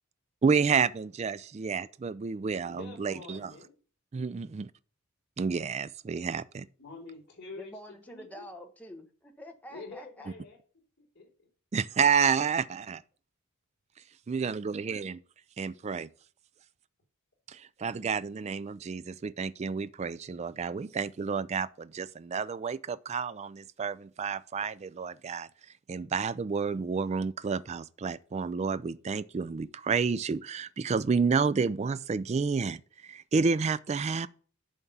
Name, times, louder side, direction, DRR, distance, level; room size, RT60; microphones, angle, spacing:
voice 1, 0.4-3.5 4.1-4.6 5.4-6.7 11.7-13.0 14.3-15.2 15.6-16.1 17.5-25.5 25.9-34.3, right 5 dB, 30° right, 0.3 m, -30 dB
voice 2, 2.7-3.7 6.8-8.5 9.7-10.6 11.0-11.5, left 3 dB, 50° left, 4.0 m, -47 dB
voice 3, 7.6-10.3, equal, 5° left, 1.1 m, -47 dB
11.0 x 3.6 x 6.9 m
head